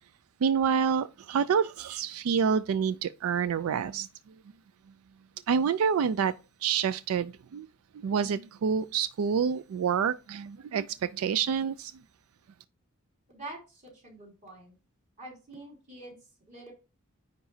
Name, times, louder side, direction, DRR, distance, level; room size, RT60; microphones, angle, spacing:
voice 1, 0.4-4.1 5.5-6.3 6.6-7.7 8.0-10.9 11.1-11.9, right 6 dB, 90° right, 0.4 m, -27 dB
voice 2, 13.3-14.7 15.2-16.7, right 2 dB, 35° right, 3.0 m, -46 dB
9.6 x 4.0 x 2.7 m
head